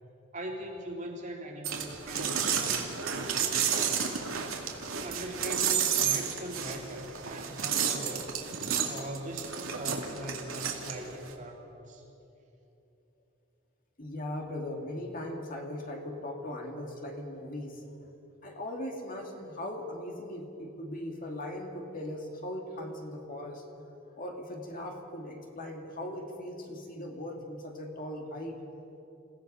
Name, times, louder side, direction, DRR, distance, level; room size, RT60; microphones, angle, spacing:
voice 1, 0.3-4.3 5.0-8.3 8.8-12.0, right 1 dB, 35° right, 0 dB, 2.7 m, -41 dB
sound 1, 1.6-11.3, right 7 dB, 85° right, 2.3 m, -31 dB
voice 2, 14.0-18.1 18.4-23.6 24.2-28.6, left 1 dB, 45° left, 2 dB, 2.3 m, -39 dB
28.0 x 16.5 x 5.5 m, 3.0 s
head